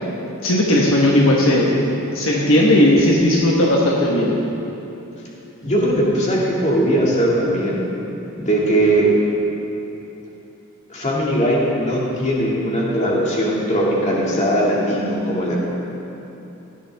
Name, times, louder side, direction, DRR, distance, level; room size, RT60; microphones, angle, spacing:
voice 1, 0.4-1.7 2.1-4.3, left 1 dB, 70° left, -3 dB, 1.3 m, -16 dB
voice 2, 5.6-7.8 8.4-9.1 10.9-15.6, right 1 dB, 35° left, -4 dB, 2.2 m, -19 dB
16.0 x 11.0 x 3.5 m, 3.0 s
head